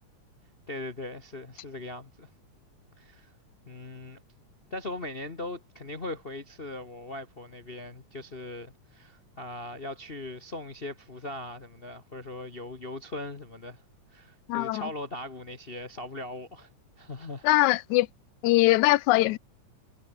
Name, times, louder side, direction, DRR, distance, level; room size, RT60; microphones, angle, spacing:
voice 1, 0.7-2.3 3.0-3.3 3.7-4.2 4.7-13.8 14.1-16.7 17.0-17.4, left 2 dB, 45° left, 0.7 m, -39 dB
voice 2, 14.5-14.9 17.4-18.1 18.4-19.4, left 18 dB, 85° left, 2.0 m, -22 dB
omnidirectional pair, 3.4 m